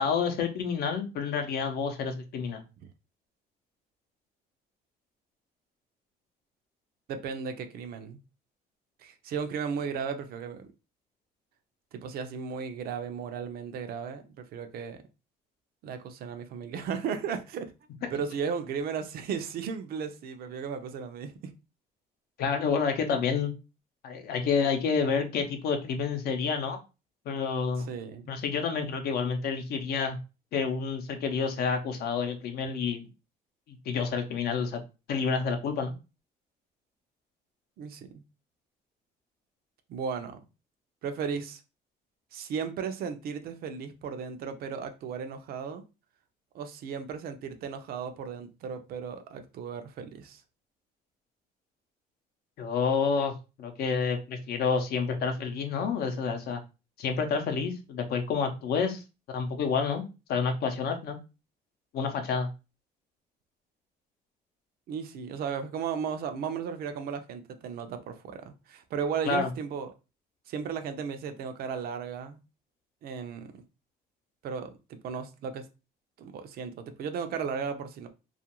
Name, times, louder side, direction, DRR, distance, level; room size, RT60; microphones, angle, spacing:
voice 1, 0.0-2.6 22.4-23.5 24.0-26.8 27.3-27.9 28.3-30.2 30.5-33.1 33.7-34.8 35.1-35.9 52.6-53.3 53.6-56.6 57.0-59.0 59.3-61.2 61.9-62.5 69.3-69.5, left 5 dB, 65° left, 0.6 m, -29 dB
voice 2, 7.1-8.2 9.0-10.7 11.9-15.0 15.8-17.7 18.1-21.5 27.9-28.3 37.8-38.1 39.9-40.4 41.0-41.6 42.3-45.8 46.5-50.4 64.9-69.9 70.5-72.4 73.0-73.6 74.4-75.7 76.2-78.1, right 6 dB, 65° right, 0.5 m, -35 dB
2.4 x 2.2 x 2.9 m
cardioid pair, 110°, 17 cm